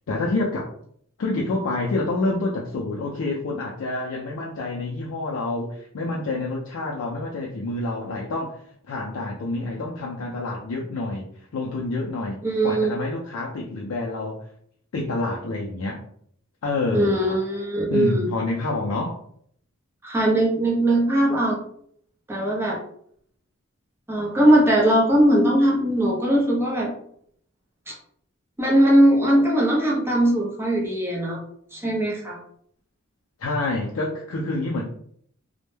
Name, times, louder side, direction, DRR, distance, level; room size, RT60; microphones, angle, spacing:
voice 1, 0.1-0.7 1.2-14.4 14.9-16.0 16.6-17.4 17.9-19.2 33.4-34.8, left 2 dB, 80° left, -1 dB, 0.4 m, -28 dB
voice 2, 12.4-12.9 16.9-18.3 20.0-21.6 22.3-22.8 24.1-26.9 27.9-28.0 28.6-31.4 31.7-32.4, right 1 dB, 10° right, -3 dB, 0.5 m, -20 dB
2.1 x 2.0 x 3.1 m, 0.64 s
head